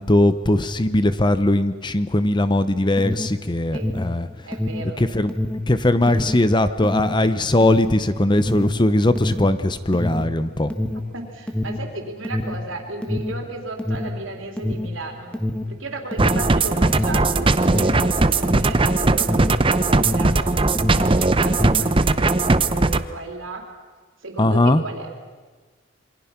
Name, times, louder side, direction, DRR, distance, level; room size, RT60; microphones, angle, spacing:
voice 1, 0.0-4.3 5.0-5.3 5.7-10.7 24.4-24.8, left 1 dB, 20° left, 12 dB, 0.7 m, -19 dB
Alarm, 2.6-20.4 20.7-22.0, left 1 dB, 5° left, 1.5 m, -27 dB
voice 2, 4.4-5.1 11.1-15.4 15.7-20.5 20.9-23.7 24.2-25.1, right 2 dB, 75° right, 3 dB, 3.6 m, -35 dB
sound 1, 16.2-23.0, right 3 dB, 25° right, 0.6 m, -19 dB
27.0 x 23.5 x 5.9 m, 1.4 s
head